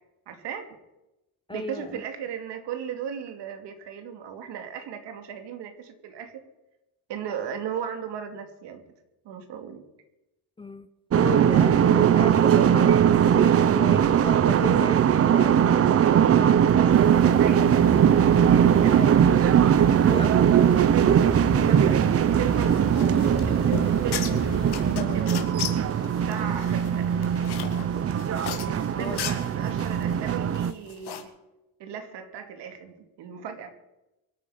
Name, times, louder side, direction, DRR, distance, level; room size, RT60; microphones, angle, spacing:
voice 1, 0.3-0.8 1.5-6.4 7.1-8.8 9.2-9.8 17.4-17.7 18.8-19.1 21.5-24.7 25.1-27.2 28.7-31.3 31.8-33.7, right 8 dB, 80° right, 6 dB, 2.4 m, -36 dB
voice 2, 1.5-2.0 10.6-16.6 18.3-19.2 19.6-20.6 29.0-29.2, left 3 dB, 15° left, 13 dB, 0.4 m, -36 dB
sound 1, 11.1-30.7, right 9 dB, 35° right, 0.6 m, -20 dB
sound 2, 16.9-25.0, right 2 dB, 55° right, 5.8 m, -33 dB
sound 3, 21.5-31.2, left 9 dB, 70° left, 2.1 m, -37 dB
24.0 x 8.7 x 5.0 m, 0.95 s
cardioid pair, 140°, 41 cm